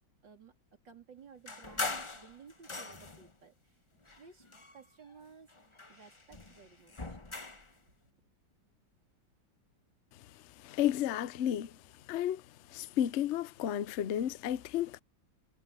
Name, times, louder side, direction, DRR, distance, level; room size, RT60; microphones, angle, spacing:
voice 1, 0.2-3.8 4.2-4.5 4.7-5.5 5.9-7.2 8.1-8.2, right 6 dB, 70° right, 4.4 m, -56 dB
sound 1, 1.5-3.3 4.0-5.2 5.5-7.7, left 3 dB, 20° left, 1.0 m, -41 dB
voice 2, 10.6-11.8 12.1-12.4 12.7-15.0, left 11 dB, 65° left, 0.6 m, -32 dB
omnidirectional pair, 2.1 m